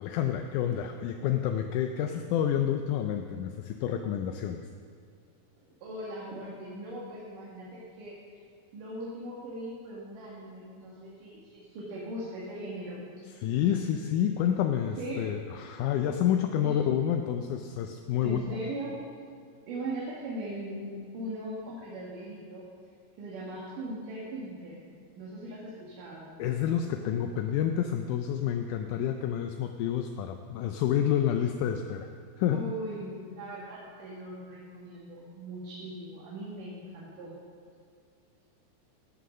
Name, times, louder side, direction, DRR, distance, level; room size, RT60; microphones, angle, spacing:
voice 1, 0.0-4.6 13.4-18.6 26.4-32.1 32.4-32.6, left 9 dB, 80° left, 5 dB, 2.0 m, -29 dB
voice 2, 5.8-8.2 8.7-13.0 15.0-15.3 16.0-16.1 16.6-16.7 18.2-19.0 19.7-22.7 23.2-24.8 25.2-26.3 32.5-37.3, right 1 dB, 85° right, -6 dB, 3.2 m, -39 dB
11.5 x 8.3 x 6.3 m, 2.3 s
omnidirectional pair, 3.7 m